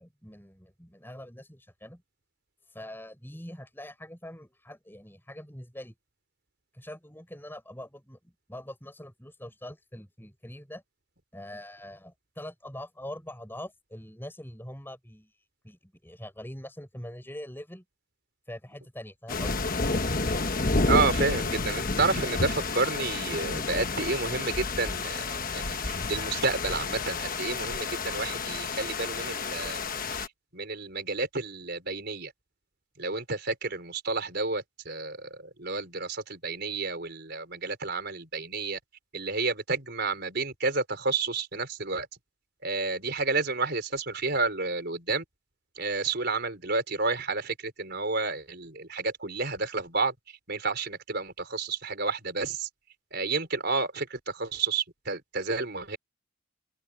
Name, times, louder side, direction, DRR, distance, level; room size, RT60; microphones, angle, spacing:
voice 1, 0.0-2.0 2.7-6.0 6.7-10.8 11.3-15.3 15.6-17.8 18.5-19.7, left 1 dB, 10° left, 6.1 m, -43 dB
sound 1, 19.3-30.3, left 3 dB, 40° left, 1.2 m, -30 dB
voice 2, 20.8-29.8 30.1-30.3 30.5-32.3 33.0-38.8 39.1-42.1 42.6-45.2 45.8-52.7 53.1-56.0, right 3 dB, 50° right, 4.9 m, -30 dB
open air
head